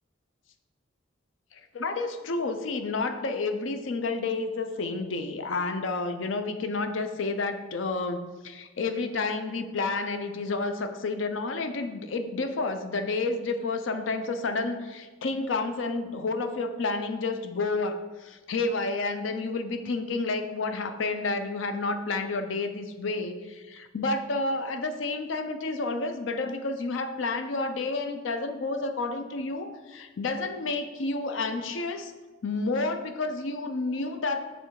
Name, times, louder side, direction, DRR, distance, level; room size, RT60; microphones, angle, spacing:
voice 1, 1.5-32.1 32.4-34.4, left 3 dB, 85° left, 8 dB, 0.6 m, -30 dB
6.9 x 3.3 x 4.7 m, 1.3 s
head